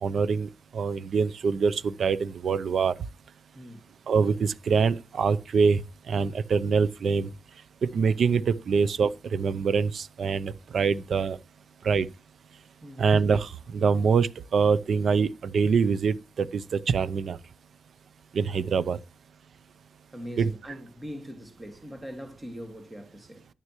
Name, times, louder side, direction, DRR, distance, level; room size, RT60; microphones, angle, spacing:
voice 1, 0.0-2.9 4.1-5.8 6.1-7.3 7.8-11.4 11.8-12.1 13.0-17.4 18.3-19.0 20.4-20.5, right 5 dB, 65° right, 0.6 m, -24 dB
voice 2, 12.8-13.2 18.6-18.7 20.1-23.5, equal, 20° right, 1.9 m, -41 dB
10.5 x 9.6 x 3.1 m
wide cardioid pair, 120°, 0 cm